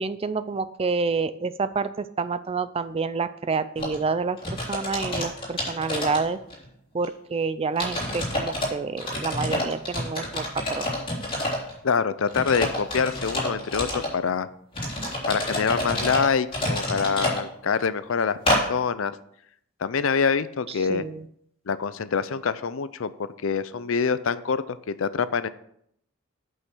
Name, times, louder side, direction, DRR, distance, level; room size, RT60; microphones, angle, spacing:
voice 1, 0.0-6.4 6.9-10.9 20.9-21.2, right 4 dB, 30° right, 13 dB, 0.4 m, -28 dB
sound 1, 3.8-4.0 4.4-6.6 7.0-7.1 7.8-8.7 9.0-11.7 12.3-14.1 14.7-17.4 18.5-18.6, left 1 dB, 25° left, 3.2 m, -28 dB
voice 2, 11.8-14.5 15.3-19.2 19.8-21.1 21.7-23.1 23.4-25.5, left 5 dB, 70° left, 15 dB, 0.5 m, -25 dB
8.5 x 5.6 x 6.1 m, 0.71 s
head